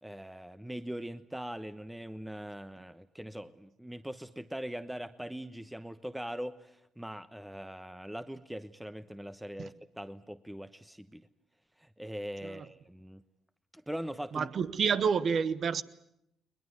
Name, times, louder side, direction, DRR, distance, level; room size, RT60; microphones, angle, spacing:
voice 1, 0.0-11.3 11.8-13.2 13.7-14.5, equal, 5° right, 1.1 m, -41 dB
voice 2, 14.3-15.8, right 6 dB, 55° right, 1.1 m, -29 dB
21.5 x 20.5 x 9.5 m
supercardioid pair, 60°, 0 cm